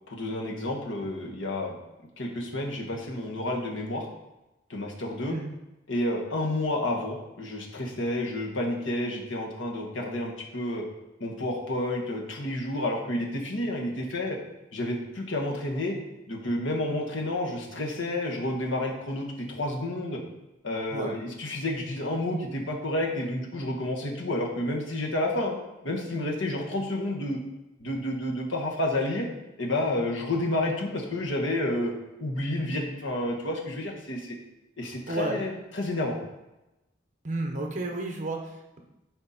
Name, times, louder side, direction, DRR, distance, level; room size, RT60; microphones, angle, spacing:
voice 1, 0.1-1.8 2.2-4.1 4.7-5.3 5.9-10.8 11.2-14.4 14.7-16.0 16.3-20.2 20.6-25.6 25.8-27.4 27.8-29.3 29.6-31.9 32.2-34.3 34.8-36.2, left 1 dB, 80° left, 0 dB, 1.6 m, -30 dB
voice 2, 35.1-35.4 37.2-38.8, right 2 dB, 40° right, 2 dB, 1.2 m, -32 dB
10.5 x 4.5 x 4.3 m, 0.98 s
head